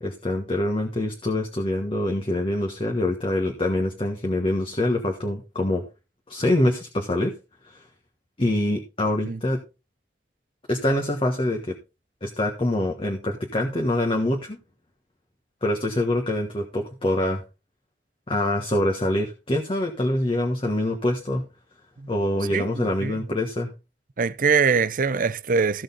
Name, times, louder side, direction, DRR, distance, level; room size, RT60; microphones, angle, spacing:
voice 1, 0.0-5.8 6.3-7.3 7.6-7.8 8.4-9.6 10.7-11.7 12.2-14.6 15.6-17.4 18.3-21.4 22.1-23.7, left 1 dB, 30° left, 1.4 m, -25 dB
voice 2, 22.5-23.2 24.2-25.8, right 5 dB, 50° right, 0.6 m, -23 dB
15.0 x 6.4 x 3.9 m
head